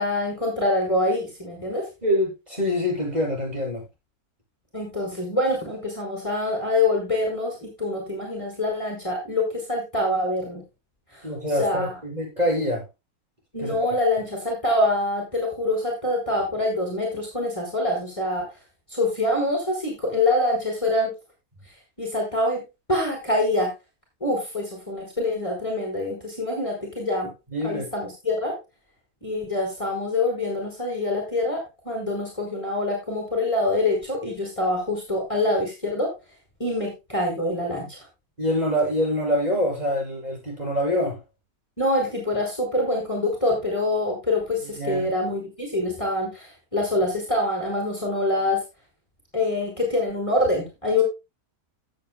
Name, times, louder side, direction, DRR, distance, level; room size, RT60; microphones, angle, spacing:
voice 1, 0.0-1.9 4.7-10.6 11.1-11.2 11.6-11.9 13.5-18.5 18.9-21.1 22.0-22.6 22.9-23.7 24.2-27.3 27.6-28.6 29.2-31.6 31.8-36.1 36.6-38.0 41.8-48.6 49.3-51.0, left 2 dB, 20° left, 4.9 m, -25 dB
voice 2, 2.0-3.8 11.2-12.8 13.6-13.7 27.5-27.9 38.4-41.2 44.6-45.1, left 1 dB, 25° right, 7.9 m, -25 dB
17.0 x 8.4 x 2.3 m
omnidirectional pair, 1.7 m